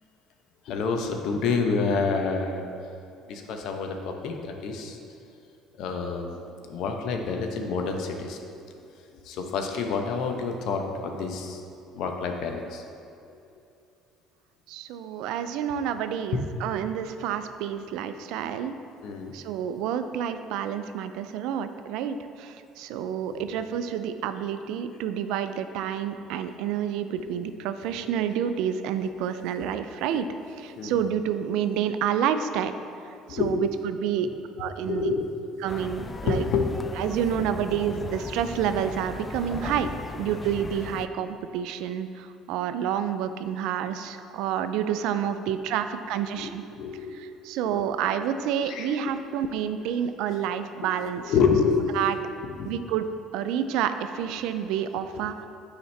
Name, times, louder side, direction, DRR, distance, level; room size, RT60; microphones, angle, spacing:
voice 1, 0.6-2.7 3.3-5.0 5.8-6.4 6.7-8.5 9.2-11.6 11.9-12.8 13.3-13.4 16.3-16.4 19.0-19.3 23.3-23.6 26.2-26.3 27.3-27.5 28.0-28.1 30.8-31.0 33.3-33.7 34.2-34.4 34.8-35.6 36.3-36.7 46.3-47.2 47.6-47.9 48.6-48.9 51.3-51.8 52.6-52.7, left 5 dB, 65° left, 4 dB, 0.8 m, -28 dB
voice 2, 14.7-18.7 19.3-30.3 30.6-32.7 33.3-34.3 34.6-35.1 35.6-36.4 37.0-46.6 47.1-51.3 52.0-52.1 52.6-53.1 53.3-55.5, right 9 dB, 70° right, 10 dB, 0.4 m, -29 dB
sound 1, 35.7-41.1, left 3 dB, 25° left, 0.4 m, -37 dB
9.2 x 4.9 x 3.3 m, 2.6 s
hypercardioid pair, 60°, 0 cm